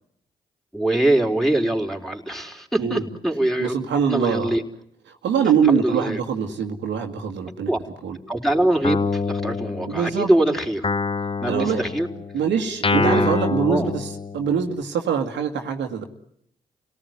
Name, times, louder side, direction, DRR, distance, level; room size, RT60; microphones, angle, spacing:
voice 1, 0.7-3.7 4.1-4.6 5.7-6.2 7.7-7.8 8.1-10.9 11.4-12.1 12.9-13.3 13.7-13.9, right 1 dB, ahead, 2 dB, 4.2 m, -23 dB
voice 2, 3.6-4.5 5.2-7.7 8.0-8.2 9.9-10.3 11.5-11.8 12.3-16.0, right 7 dB, 75° right, 4 dB, 2.0 m, -23 dB
Guitar, 8.8-10.3 10.8-14.7, left 4 dB, 30° left, 1.1 m, -26 dB
29.0 x 18.5 x 9.6 m, 0.72 s
hypercardioid pair, 45°, 19 cm